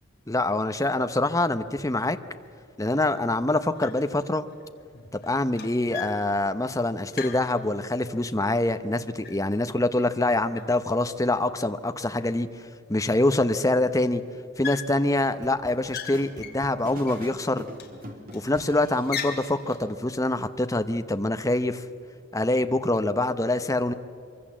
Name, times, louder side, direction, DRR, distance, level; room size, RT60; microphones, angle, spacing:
voice 1, 0.3-2.2 2.8-4.5 5.2-12.5 12.9-14.2 14.6-17.7 18.3-21.8 22.3-23.9, left 2 dB, 15° left, 9 dB, 0.8 m, -25 dB
sound 1, 2.4-2.5 3.0-3.4 3.7-4.2 4.5-8.2 8.5-10.2 10.5-11.5 12.1-12.2 12.4-12.5 12.9-13.6 13.9-14.1 14.6-15.3 15.6-17.3 17.7-18.5 18.9-19.9, left 8 dB, 50° left, 2.5 m, -40 dB
sound 2, 15.2-19.5, right 1 dB, 45° right, 2.9 m, -44 dB
25.0 x 24.0 x 7.4 m, 2.4 s
head